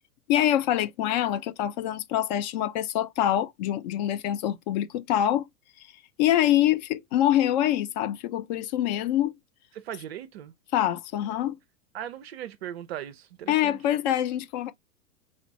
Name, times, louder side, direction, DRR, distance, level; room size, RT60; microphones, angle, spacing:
voice 1, 0.3-5.5 6.2-9.3 10.7-11.6 13.5-14.7, left 12 dB, 35° left, 0.5 m, -25 dB
voice 2, 9.7-10.5 11.9-13.8, right 11 dB, 50° right, 0.5 m, -38 dB
4.1 x 2.4 x 3.0 m
figure-of-eight pair, 95°, 42 cm